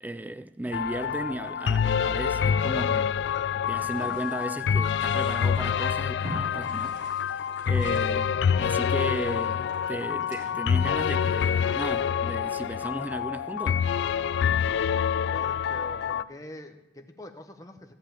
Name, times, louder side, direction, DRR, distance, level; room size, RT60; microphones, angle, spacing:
voice 1, 0.0-3.1 3.7-7.0 7.7-13.9, right 1 dB, 10° right, 0.3 m, -35 dB
sound 1, 0.7-16.2, left 7 dB, 85° left, 0.3 m, -26 dB
sound 2, 3.7-13.3, equal, 50° right, 2.6 m, -46 dB
voice 2, 15.2-17.9, left 1 dB, 20° left, 0.9 m, -44 dB
14.0 x 5.0 x 9.0 m
head